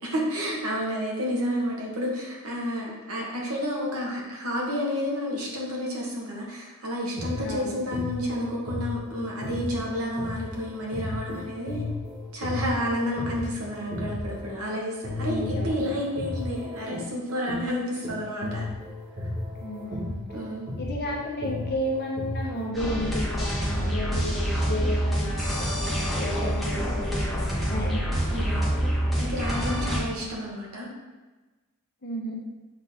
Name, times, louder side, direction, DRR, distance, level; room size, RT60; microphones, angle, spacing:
voice 1, 0.0-11.9 12.3-18.6 19.2-19.3 20.3-20.7 28.3-28.6 29.2-30.9, equal, 70° right, -2 dB, 1.4 m, -30 dB
sound 1, 7.0-14.7 15.0-22.7, left 2 dB, 50° right, 1.5 m, -34 dB
voice 2, 7.4-7.8 15.3-15.8 19.6-20.2 20.8-28.0 32.0-32.3, equal, 50° left, -2 dB, 1.2 m, -32 dB
sound 2, 22.7-30.0, equal, ahead, 1.2 m, -27 dB
6.4 x 4.1 x 3.6 m, 1.2 s
head